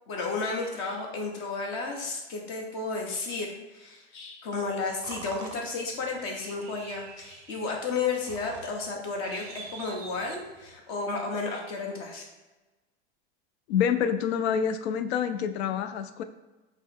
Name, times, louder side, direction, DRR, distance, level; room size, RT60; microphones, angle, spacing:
voice 1, 0.1-12.3, left 4 dB, 40° left, 1 dB, 0.9 m, -33 dB
sound 1, 4.6-10.8, right 4 dB, 30° right, 0.5 m, -46 dB
voice 2, 13.7-16.2, left 8 dB, 75° left, 10 dB, 0.5 m, -27 dB
5.0 x 2.0 x 3.6 m, 1.1 s
supercardioid pair, 135°, 32 cm